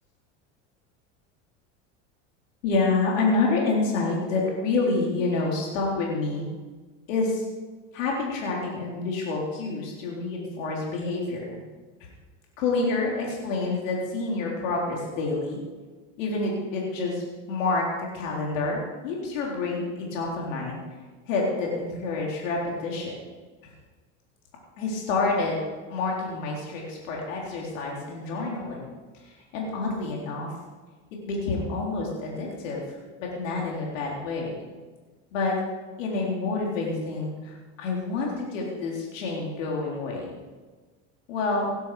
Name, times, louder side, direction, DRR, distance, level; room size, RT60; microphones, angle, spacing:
voice 1, 2.6-6.5 7.1-7.5 7.9-11.4 12.6-15.6 16.2-17.2 17.5-20.8 21.3-23.1 24.8-25.6 25.9-28.9 29.2-30.5 31.2-34.5 35.3-35.5 36.0-40.3 41.3-41.7, left 3 dB, 85° left, -2 dB, 3.9 m, -28 dB
18.0 x 11.5 x 5.0 m, 1.3 s
supercardioid pair, 110°, 38 cm